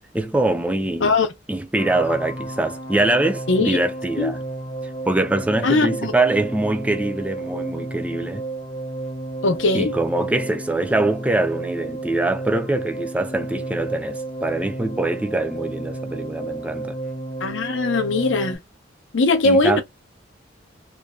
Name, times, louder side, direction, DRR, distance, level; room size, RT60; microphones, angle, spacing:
voice 1, 0.1-1.1 1.5-4.4 5.1-8.4 9.7-17.0 19.4-19.8, right 2 dB, 5° right, 0.4 m, -23 dB
sound 1, 1.8-18.6, right 2 dB, 35° left, 0.7 m, -32 dB
voice 2, 3.5-3.8 4.2-4.3 5.6-6.1 9.4-10.0 17.4-18.6 19.1-19.8, left 3 dB, 85° left, 0.7 m, -20 dB
2.6 x 2.2 x 2.2 m
head